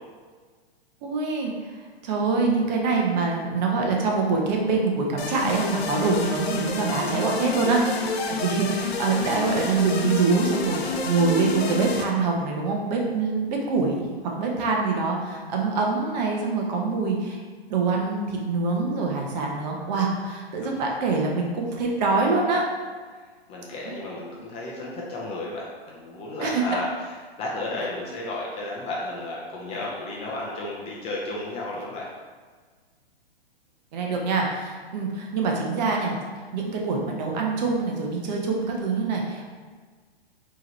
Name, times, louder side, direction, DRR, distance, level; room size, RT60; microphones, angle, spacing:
voice 1, 1.0-1.5 2.0-17.4 17.7-22.6 23.9-24.0 26.4-26.6 33.9-36.2 36.5-39.5, right 4 dB, 45° right, 0 dB, 0.8 m, -25 dB
sound 1, 5.2-12.0, left 4 dB, 75° left, 0.7 m, -29 dB
voice 2, 20.6-21.0 23.5-32.1, left 2 dB, 20° left, -4 dB, 0.6 m, -33 dB
4.6 x 3.0 x 3.1 m, 1.5 s
hypercardioid pair, 135°, 31 cm